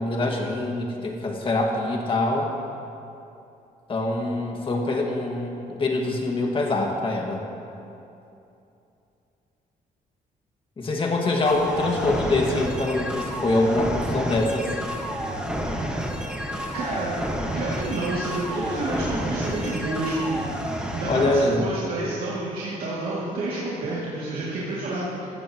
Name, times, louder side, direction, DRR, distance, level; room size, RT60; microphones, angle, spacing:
voice 1, 0.0-2.5 3.9-7.4 10.8-14.7 21.1-21.8, left 2 dB, 35° left, 0 dB, 1.8 m, -24 dB
sound 1, 11.4-21.2, equal, 5° right, 1.4 m, -30 dB
voice 2, 16.5-25.3, right 2 dB, 75° right, -8 dB, 2.5 m, -30 dB
15.5 x 14.5 x 3.0 m, 2.8 s
cardioid pair, 125°, 15 cm